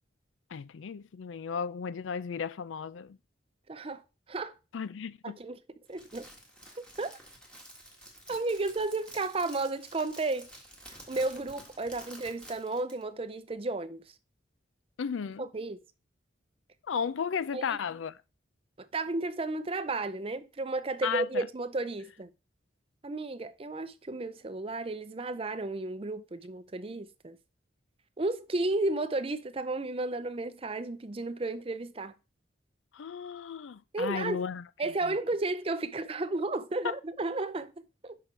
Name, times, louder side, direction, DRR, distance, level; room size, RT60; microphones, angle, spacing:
voice 1, 0.5-3.2 4.7-5.4 15.0-15.5 16.9-18.2 21.0-21.4 32.9-34.6 35.0-35.2, left 6 dB, 85° left, 0.4 m, -34 dB
voice 2, 3.7-4.0 4.3-4.6 5.2-5.6 5.9-6.3 7.0-7.1 8.3-10.5 10.9-14.0 15.4-15.8 17.5-17.7 18.8-22.3 23.0-27.4 28.2-32.1 33.9-34.4 34.8-38.2, right 2 dB, 30° right, 0.5 m, -33 dB
Crackle, 5.9-13.0, equal, 5° left, 1.7 m, -50 dB
6.6 x 5.7 x 4.6 m
head